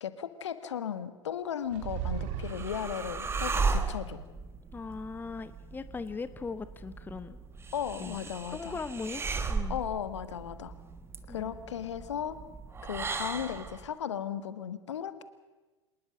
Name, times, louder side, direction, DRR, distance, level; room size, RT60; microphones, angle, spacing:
voice 1, 0.0-4.2 7.7-8.8 9.7-10.7 11.3-12.4 12.8-15.2, left 9 dB, 70° left, 12 dB, 1.5 m, -36 dB
sound 1, 1.7-3.3, right 10 dB, 45° right, 2.0 m, -36 dB
sound 2, 1.8-13.9, right 4 dB, 15° right, 1.5 m, -36 dB
voice 2, 4.7-7.4 8.0-9.8 11.3-11.6, left 4 dB, 10° left, 13 dB, 1.0 m, -39 dB
26.5 x 19.5 x 6.3 m, 1.2 s
figure-of-eight pair, 90°, 15 cm